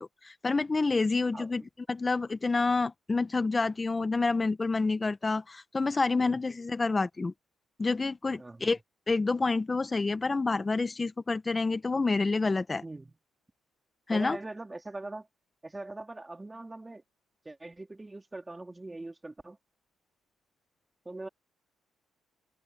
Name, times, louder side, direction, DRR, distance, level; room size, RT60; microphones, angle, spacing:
voice 1, 0.0-1.6 1.9-7.3 7.8-8.8 9.1-12.8 14.1-14.4, left 3 dB, 25° left, 1.4 m, -28 dB
voice 2, 1.3-1.7 6.2-6.4 8.4-8.7 12.8-13.2 14.1-15.3 15.6-17.0 17.4-19.6 21.1-21.3, right 2 dB, 15° right, 4.0 m, -42 dB
cardioid pair, 90°, 0 cm